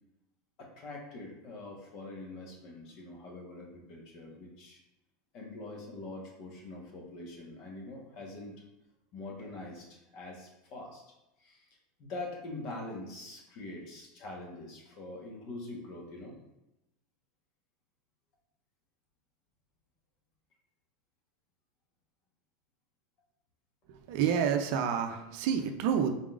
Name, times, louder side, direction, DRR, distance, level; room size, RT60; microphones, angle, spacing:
voice 1, 0.6-4.8 5.3-8.5 9.1-11.0 11.4-11.7 12.0-16.3, left 2 dB, 50° left, 0 dB, 1.2 m, -44 dB
voice 2, 23.9-26.1, right 7 dB, 65° right, 6 dB, 0.5 m, -29 dB
4.1 x 3.7 x 2.4 m, 0.92 s
supercardioid pair, 130°, 0 cm